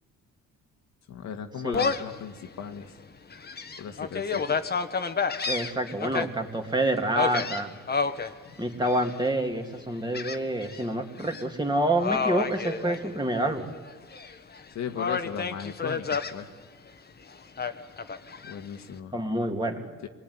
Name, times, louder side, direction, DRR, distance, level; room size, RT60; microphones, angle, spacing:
voice 1, 1.1-3.0 3.8-4.6 8.5-8.6 14.7-16.5 18.4-19.2 20.0-20.1, left 7 dB, 65° left, 6 dB, 1.8 m, -37 dB
Gull seagull, 1.7-2.2 2.7-2.8 3.3-6.3 7.1-8.3 8.8-9.3 10.1-10.8 11.2-11.4 12.0-13.5 13.9-14.6 15.0-16.3 17.6-18.6, left 5 dB, 35° left, 1.5 m, -30 dB
voice 2, 5.5-7.7 8.6-13.7 19.1-19.9, right 1 dB, 15° right, 3 dB, 2.8 m, -27 dB
26.0 x 20.0 x 9.7 m, 1.4 s
cardioid pair, 90°, 30 cm